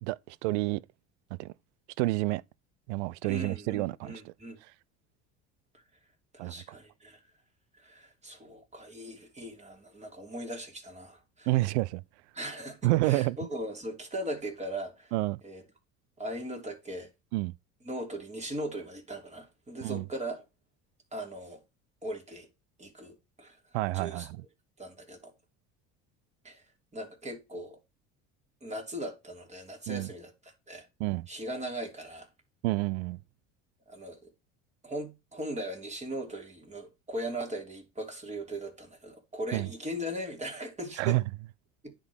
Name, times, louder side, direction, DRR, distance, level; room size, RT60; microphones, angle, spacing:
voice 1, 0.0-0.8 1.4-1.5 2.0-2.4 2.9-4.3 6.4-6.5 11.5-12.0 12.8-13.4 15.1-15.4 17.3-17.5 19.8-20.1 23.7-24.4 29.9-30.1 31.0-31.3 32.6-33.2 39.5-39.7 41.0-41.2, right 20 dB, 85° right, 0.5 m, -29 dB
voice 2, 3.2-4.6 6.3-7.2 7.8-11.5 12.3-15.1 15.4-15.6 16.2-17.1 17.8-20.4 21.1-21.6 22.0-22.5 22.8-23.6 23.9-24.3 24.8-25.3 26.4-26.6 26.9-27.8 28.6-30.3 30.7-30.9 31.3-32.3 33.9-34.3 34.8-41.2 41.8-41.9, right 1 dB, 20° right, 3.3 m, -39 dB
9.7 x 3.8 x 6.2 m
supercardioid pair, 90°, 33 cm